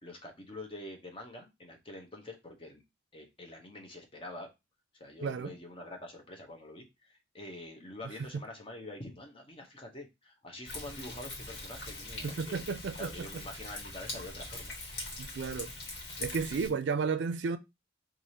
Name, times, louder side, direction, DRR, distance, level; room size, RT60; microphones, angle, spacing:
voice 1, 0.0-2.8 3.1-4.5 4.9-12.7 13.0-14.7 16.4-16.7, left 1 dB, 30° left, 0.8 m, -46 dB
voice 2, 5.2-5.5 8.3-8.4 12.2-13.4 15.2-15.7 16.2-17.6, right 5 dB, 75° right, 0.4 m, -33 dB
Thunder, 10.7-16.7, left 2 dB, 60° left, 1.5 m, -42 dB
4.7 x 2.5 x 2.8 m
head